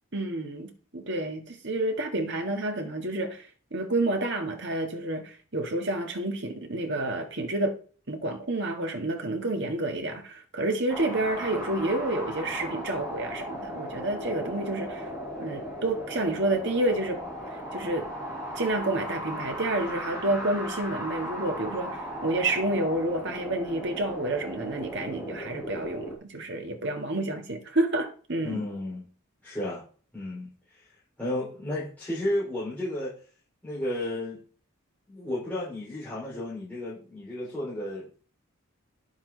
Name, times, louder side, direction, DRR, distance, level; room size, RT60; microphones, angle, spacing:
voice 1, 0.1-7.8 8.1-15.1 15.4-17.2 17.7-18.1 18.5-28.6, right 2 dB, 55° right, 1.8 m, -29 dB
sound 1, 10.9-26.2, equal, 15° right, 5.8 m, -37 dB
voice 2, 28.4-29.0 29.4-29.8 30.1-30.5 30.7-30.8 31.2-33.1 33.6-34.4 35.1-38.1, left 1 dB, 10° left, 4.7 m, -32 dB
10.5 x 7.2 x 4.0 m
head